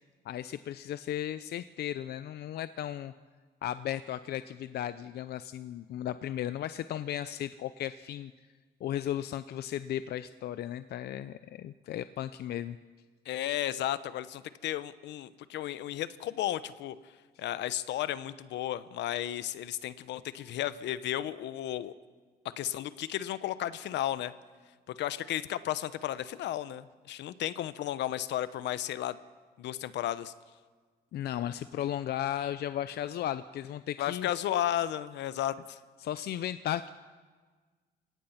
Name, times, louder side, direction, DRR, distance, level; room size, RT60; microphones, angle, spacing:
voice 1, 0.2-3.1 3.6-8.3 8.8-12.8 31.1-34.3 36.0-36.9, left 11 dB, 65° left, 13 dB, 0.6 m, -35 dB
voice 2, 13.2-17.0 17.4-21.9 22.6-24.3 24.9-29.2 29.6-30.3 34.0-35.8, left 12 dB, 80° left, 14 dB, 1.0 m, -33 dB
29.0 x 17.5 x 5.8 m, 1.4 s
cardioid pair, 125°, 18 cm